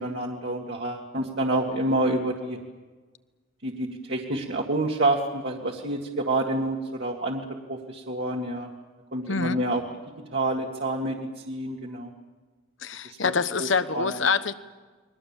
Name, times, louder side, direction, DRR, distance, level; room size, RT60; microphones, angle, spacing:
voice 1, 0.0-2.6 3.6-7.4 7.7-8.7 9.1-9.8 10.3-12.1 13.0-13.3 13.9-14.2, right 1 dB, 60° right, -1 dB, 2.1 m, -28 dB
voice 2, 9.3-9.6 12.8-14.5, left 5 dB, 75° left, 12 dB, 1.2 m, -25 dB
30.0 x 22.5 x 7.4 m, 1.4 s
head